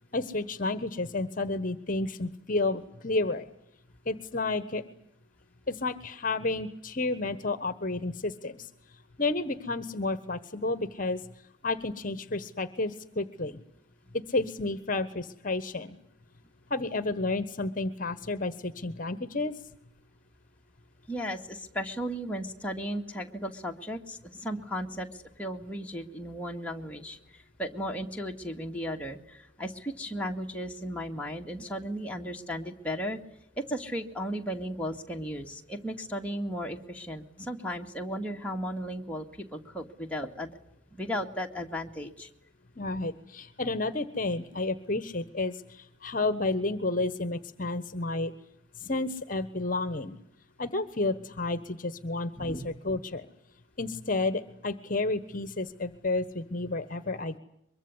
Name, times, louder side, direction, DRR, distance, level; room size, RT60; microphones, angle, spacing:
voice 1, 0.1-3.5 4.1-4.8 5.7-8.7 9.2-11.2 11.6-13.6 14.1-16.0 16.7-19.5 42.8-48.3 48.8-50.1 50.6-53.3 53.8-57.4, left 2 dB, 40° left, 14 dB, 1.2 m, -31 dB
voice 2, 21.1-33.2 33.6-40.5 40.9-42.3 52.4-52.7, equal, 5° left, 1 dB, 2.1 m, -35 dB
23.5 x 23.0 x 9.7 m, 0.77 s
head